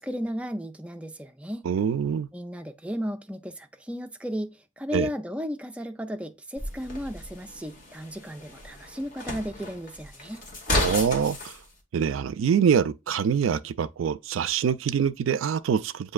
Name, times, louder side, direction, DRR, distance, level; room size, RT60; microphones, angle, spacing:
voice 1, 0.0-1.7 2.3-10.4, equal, 5° right, 0.3 m, -34 dB
voice 2, 1.6-2.3 4.9-5.1 10.8-11.4 11.9-16.1, right 7 dB, 85° right, 0.3 m, -24 dB
sound 1, 6.6-11.6, left 1 dB, 45° left, 1.1 m, -32 dB
7.4 x 2.6 x 2.3 m
head